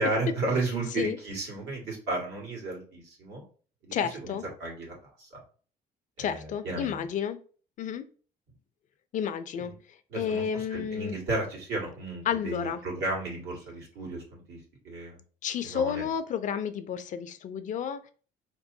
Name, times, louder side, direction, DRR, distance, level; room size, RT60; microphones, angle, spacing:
voice 1, 0.0-3.4 3.8-5.3 6.2-7.0 10.1-14.6 14.8-15.2 15.6-16.0, right 2 dB, 85° right, -2 dB, 1.7 m, -33 dB
voice 2, 3.9-4.4 6.2-7.4 7.8-8.1 9.1-9.7 10.1-11.2 12.3-12.8 15.4-18.1, left 8 dB, 50° left, 11 dB, 0.4 m, -31 dB
4.2 x 3.0 x 2.6 m, 0.40 s
cardioid pair, 110°, 17 cm